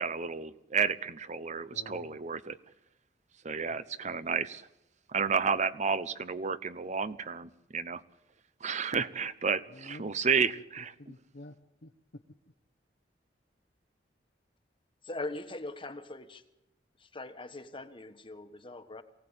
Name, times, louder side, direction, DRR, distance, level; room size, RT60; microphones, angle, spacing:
voice 1, 0.0-2.6 3.4-4.7 5.1-8.0 8.6-10.9, right 5 dB, 40° right, 15 dB, 0.9 m, -31 dB
voice 2, 1.7-2.2 3.7-4.2 9.7-10.1 10.4-10.5 10.8-11.6 11.8-12.2, left 1 dB, 60° left, 4 dB, 1.0 m, -50 dB
voice 3, 15.0-16.4 17.0-19.0, left 2 dB, 30° left, 8 dB, 1.3 m, -41 dB
23.5 x 17.5 x 8.8 m, 0.95 s
head